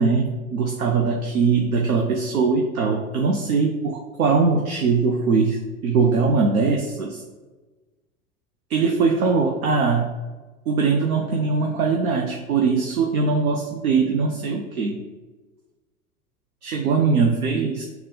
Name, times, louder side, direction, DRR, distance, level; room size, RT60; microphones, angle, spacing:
voice 1, 0.0-7.2 8.7-10.1 10.7-15.0 16.6-17.8, right 4 dB, 85° right, 2 dB, 0.6 m, -21 dB
6.3 x 2.3 x 3.7 m, 1.2 s
figure-of-eight pair, 85°, 42 cm